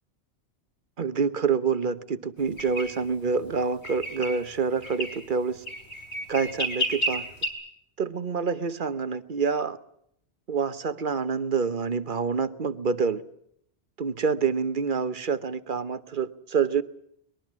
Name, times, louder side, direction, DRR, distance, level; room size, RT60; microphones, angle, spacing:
voice 1, 1.0-5.6 6.3-7.2 8.0-9.8 10.5-13.2 14.0-16.8, right 5 dB, 50° right, 13 dB, 1.2 m, -27 dB
sound 1, 2.6-2.9 3.8-4.4 4.8-5.2 5.7-7.5, equal, 80° left, 5.0 m, -30 dB
23.0 x 21.5 x 7.4 m, 0.73 s
omnidirectional pair, 1.1 m